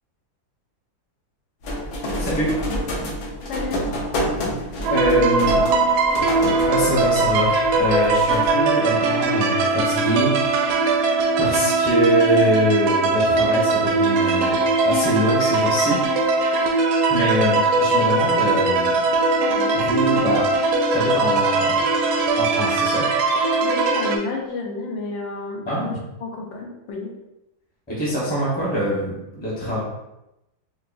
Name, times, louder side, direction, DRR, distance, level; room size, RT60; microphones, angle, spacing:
sound 1, 1.6-8.5, equal, 65° left, 1.2 m, -29 dB
voice 1, 2.2-2.5 4.9-5.5 6.7-11.0 11.4-16.0 17.1-19.0 19.7-20.5 20.9-21.8 22.3-23.1 25.7-26.0 27.9-29.8, equal, 10° left, -6 dB, 0.6 m, -24 dB
voice 2, 3.5-3.8 5.1-5.3 5.6-5.8 19.5-19.8 23.6-27.1, left 3 dB, 80° left, 0 dB, 1.4 m, -31 dB
sound 2, 4.8-24.2, right 3 dB, 75° right, 1.0 m, -20 dB
4.7 x 2.5 x 2.5 m, 0.91 s
omnidirectional pair, 2.1 m